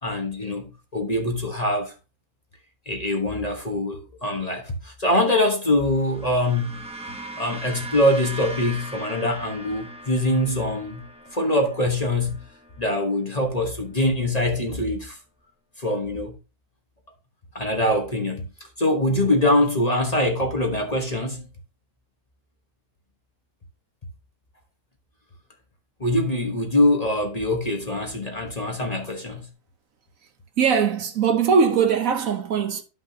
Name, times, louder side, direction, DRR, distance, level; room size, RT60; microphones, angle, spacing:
voice 1, 0.0-1.9 2.9-6.8 7.4-11.0 11.3-12.4 12.8-15.2 15.8-16.3 17.5-21.5 26.0-29.5, left 1 dB, 30° left, 1.2 m, -23 dB
sound 1, 5.8-14.3, right 2 dB, 5° right, 0.7 m, -40 dB
voice 2, 30.6-32.8, right 6 dB, 65° right, 1.2 m, -20 dB
12.0 x 5.6 x 2.7 m
omnidirectional pair, 1.7 m